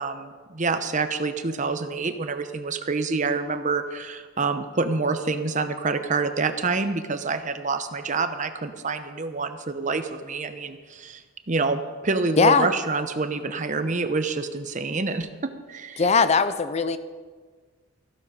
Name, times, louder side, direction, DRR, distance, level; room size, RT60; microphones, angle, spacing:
voice 1, 0.0-11.2 11.5-16.0, right 4 dB, 40° right, 9 dB, 0.8 m, -27 dB
voice 2, 12.4-12.7 16.0-17.0, left 5 dB, 35° left, 12 dB, 0.5 m, -19 dB
15.0 x 11.5 x 4.9 m, 1.5 s
head